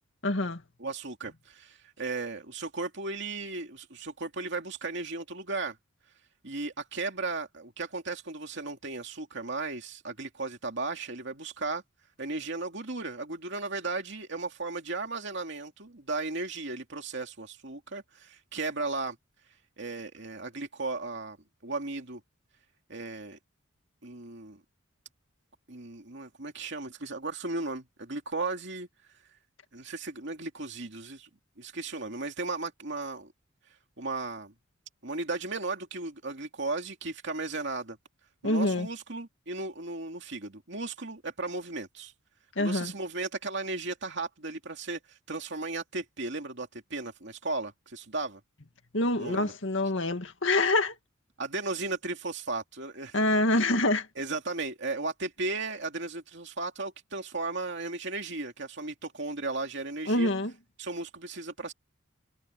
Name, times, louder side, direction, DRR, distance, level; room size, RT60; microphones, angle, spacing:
voice 1, 0.2-0.6 38.4-38.9 42.6-42.9 48.9-50.9 53.1-54.1 60.1-60.5, left 2 dB, 65° left, 2.2 m, -26 dB
voice 2, 0.8-5.8 6.4-11.8 12.2-19.2 19.8-21.4 21.6-22.2 22.9-23.4 24.0-24.6 25.7-28.9 29.7-31.3 31.6-33.3 34.0-34.5 35.0-38.0 38.4-42.1 42.6-48.4 49.2-49.5 51.4-53.2 53.5-53.6 54.2-60.3 60.8-61.7, right 3 dB, 60° right, 2.7 m, -35 dB
head